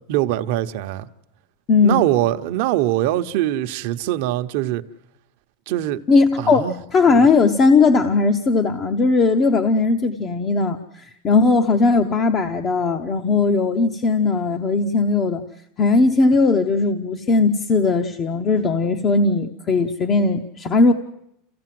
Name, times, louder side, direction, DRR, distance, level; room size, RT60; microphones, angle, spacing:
voice 1, 0.1-1.1 1.8-4.8 5.7-6.0 6.4-6.8, right 14 dB, 65° right, 0.8 m, -22 dB
voice 2, 1.7-2.1 6.1-6.6 6.9-15.4 15.8-20.9, left 3 dB, 30° left, 0.8 m, -18 dB
28.0 x 15.5 x 7.6 m
supercardioid pair, 145°, 0 cm